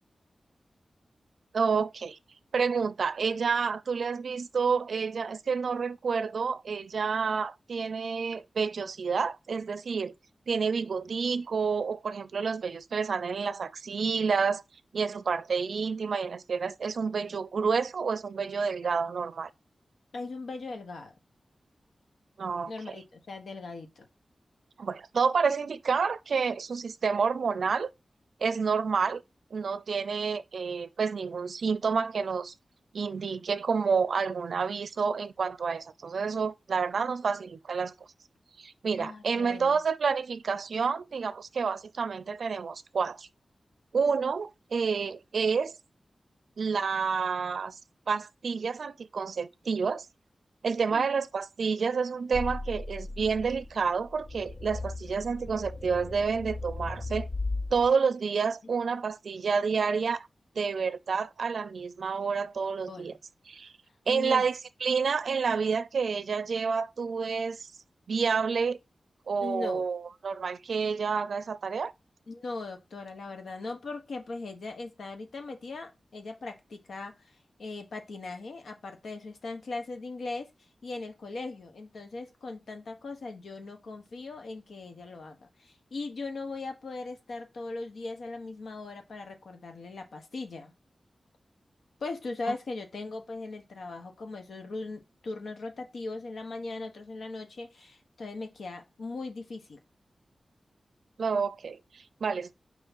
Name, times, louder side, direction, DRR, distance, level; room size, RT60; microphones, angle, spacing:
voice 1, 1.5-2.2 2.5-10.1 10.5-14.6 14.9-19.5 22.4-22.7 24.8-27.9 28.4-29.2 29.5-32.5 32.9-37.9 38.6-43.3 43.9-45.7 46.6-47.7 48.1-50.1 50.6-57.3 57.7-60.3 60.6-63.2 63.5-63.7 64.1-67.7 68.1-68.8 69.3-71.9 101.2-102.5, right 5 dB, 80° right, 0.4 m, -29 dB
voice 2, 20.1-21.1 22.7-24.1 39.0-39.8 50.9-51.0 62.9-63.2 64.1-64.5 69.4-69.9 72.3-77.3 77.6-80.5 80.8-90.7 92.0-99.8, left 3 dB, 85° left, 1.1 m, -39 dB
sound 1, 52.3-57.9, left 2 dB, 40° left, 0.7 m, -37 dB
4.8 x 3.5 x 5.6 m
cardioid pair, 50°, 0 cm